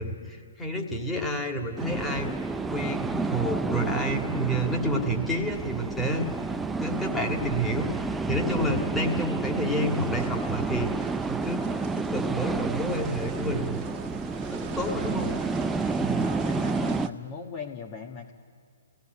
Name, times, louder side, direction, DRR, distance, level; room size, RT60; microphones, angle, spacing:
voice 1, 0.0-2.3 2.7-6.2 6.8-11.6 11.9-13.8 14.5-15.3 16.0-16.2, equal, 10° left, 0 dB, 2.4 m, -29 dB
sound 1, 1.8-17.1, right 4 dB, 10° right, 0.5 m, -30 dB
sound 2, 9.7-17.1, right 6 dB, 30° right, 1.6 m, -44 dB
voice 2, 16.0-18.3, left 6 dB, 30° left, 2 dB, 1.6 m, -39 dB
21.5 x 17.5 x 9.7 m, 2.2 s
hypercardioid pair, 135°, 0 cm